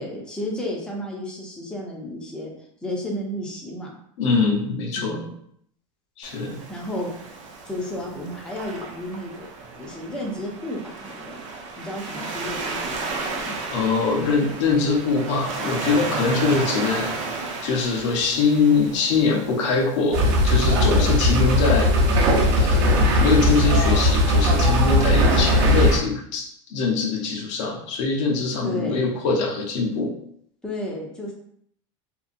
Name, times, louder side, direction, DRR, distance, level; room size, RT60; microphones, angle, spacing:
voice 1, 0.0-2.5 2.8-3.9 5.0-5.3 6.7-7.1 7.6-11.4 11.8-13.6 20.8-21.3 28.6-29.1 30.6-31.3, left 1 dB, 5° left, -2 dB, 0.6 m, -32 dB
voice 2, 4.2-5.2 6.2-6.6 13.7-17.1 17.6-21.9 22.5-30.1, left 4 dB, 70° left, 0 dB, 0.8 m, -23 dB
Waves surf, 6.2-24.1, right 3 dB, 90° right, 0.6 m, -34 dB
sound 1, 20.1-26.0, left 1 dB, 55° right, 0.7 m, -18 dB
2.7 x 2.3 x 2.5 m, 0.67 s
supercardioid pair, 130°, 16 cm